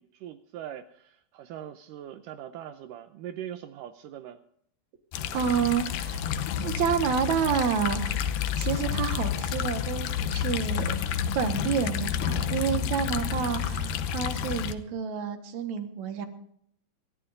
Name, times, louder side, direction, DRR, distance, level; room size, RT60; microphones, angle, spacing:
voice 1, 0.0-4.4, right 10 dB, 80° right, 9 dB, 2.1 m, -41 dB
sound 1, 5.1-14.7, left 8 dB, 75° left, 2.5 m, -30 dB
voice 2, 5.3-6.2 6.6-8.2 8.6-11.0 11.4-16.3, right 7 dB, 60° right, 7 dB, 2.5 m, -29 dB
26.5 x 13.5 x 2.6 m, 0.68 s
omnidirectional pair, 4.1 m